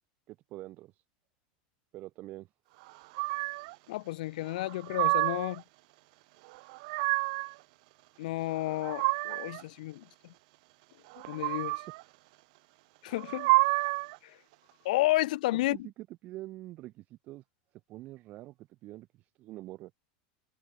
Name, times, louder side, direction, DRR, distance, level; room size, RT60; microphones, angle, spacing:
voice 1, 0.3-1.0 1.9-2.5 15.7-15.9 16.2-17.4 17.9-19.9, right 17 dB, 35° right, 2.4 m, -45 dB
sound 1, 3.1-3.7 4.6-5.6 6.5-7.5 8.5-9.6 11.1-12.0 13.1-14.2, right 26 dB, 60° right, 0.6 m, -29 dB
voice 2, 3.9-5.6 8.2-10.3 11.3-11.8 13.0-13.5 14.2-14.4 14.8-15.9, left 18 dB, 75° left, 1.5 m, -31 dB
supercardioid pair, 160°, 4 cm